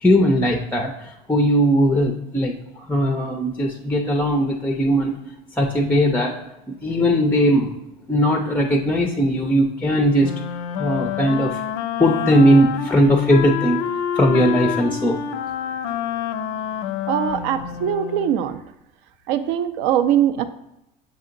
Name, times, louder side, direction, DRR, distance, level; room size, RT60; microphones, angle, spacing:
voice 1, 0.0-2.5 2.9-5.2 5.6-6.4 6.8-7.7 8.1-10.3 10.8-11.6 12.0-13.8 14.2-15.2, equal, 10° left, 2 dB, 0.4 m, -18 dB
Wind instrument woodwind instrument, 10.2-18.4, left 8 dB, 75° left, 0.4 m, -28 dB
voice 2, 17.1-18.6 19.3-20.4, right 10 dB, 70° right, 11 dB, 0.5 m, -21 dB
7.0 x 2.8 x 2.5 m, 0.86 s
supercardioid pair, 110°, 20 cm